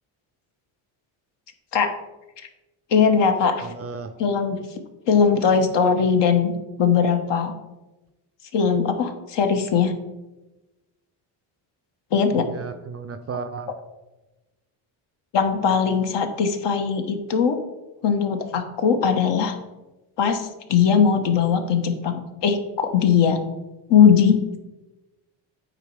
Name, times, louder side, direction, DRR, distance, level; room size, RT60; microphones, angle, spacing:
voice 1, 2.9-3.7 4.2-4.6 5.1-6.5 6.8-7.5 8.5-9.9 12.1-12.5 15.3-17.6 18.0-19.5 20.2-23.4 23.9-24.4, left 6 dB, 60° left, 6 dB, 1.2 m, -20 dB
voice 2, 3.6-4.2 12.3-13.7, right 5 dB, 30° right, 8 dB, 0.4 m, -34 dB
8.8 x 4.2 x 4.8 m, 1.1 s
cardioid pair, 105°, 49 cm